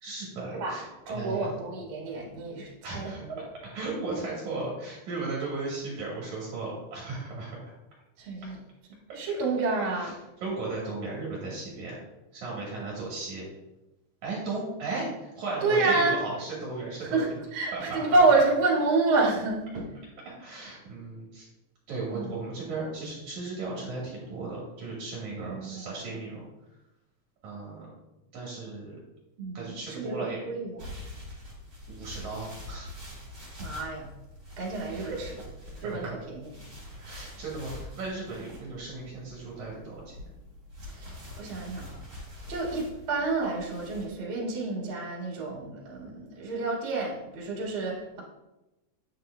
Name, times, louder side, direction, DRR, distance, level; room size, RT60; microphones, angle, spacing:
voice 1, 0.0-1.5 2.8-7.7 9.1-9.2 9.9-10.1 10.4-12.0 12.3-13.5 14.2-17.4 17.7-18.2 20.3-21.5 21.9-26.4 27.4-27.9 28.3-29.0 29.5-30.4 31.3-31.4 31.9-32.9 34.9-35.1 35.7-36.1 37.0-40.3, right 3 dB, 65° right, -4 dB, 2.6 m, -36 dB
voice 2, 0.5-3.4 8.2-8.6 9.1-10.1 15.6-16.2 17.1-17.3 17.5-19.9 22.1-22.3 25.4-25.8 29.4-30.8 33.6-34.1 34.6-35.3 35.8-36.5 40.9-41.9 42.5-48.2, right 3 dB, 45° right, -4 dB, 2.3 m, -28 dB
sound 1, 30.8-44.1, left 1 dB, 25° right, 2.7 m, -45 dB
8.9 x 6.8 x 2.2 m, 0.98 s
omnidirectional pair, 3.8 m